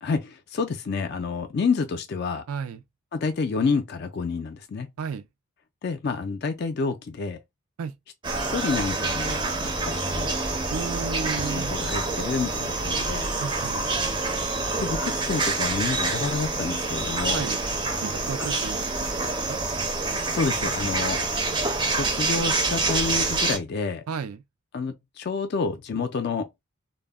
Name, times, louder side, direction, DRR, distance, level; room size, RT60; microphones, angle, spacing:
voice 1, 0.0-2.4 3.1-4.9 5.8-7.4 8.5-10.3 11.3-13.3 14.8-17.5 20.3-21.2 21.9-24.0 24.7-26.5, left 4 dB, 50° left, 0.3 m, -29 dB
voice 2, 2.5-2.8 5.0-5.3 7.8-7.9 10.7-11.7 13.4-13.9 17.3-17.6 18.0-19.6 24.1-24.4, right 6 dB, 80° right, 0.4 m, -33 dB
sound 1, 8.2-23.6, right 3 dB, 20° right, 0.4 m, -27 dB
2.1 x 2.0 x 3.4 m
head